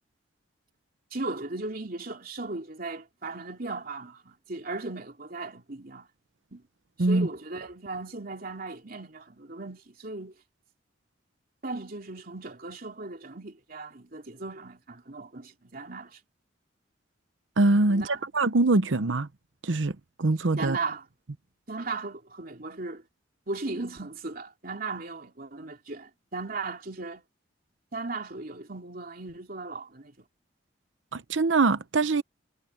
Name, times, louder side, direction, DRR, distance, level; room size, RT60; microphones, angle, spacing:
voice 1, 1.1-6.1 6.5-6.6 7.0-10.3 11.6-16.2 17.9-18.3 20.6-21.1 21.7-23.0 23.5-27.2 27.9-30.2, right 3 dB, 50° right, 3.0 m, -37 dB
voice 2, 17.6-18.0 18.3-19.3 19.6-19.9 20.2-20.8 31.1-32.2, right 2 dB, 90° right, 0.8 m, -23 dB
head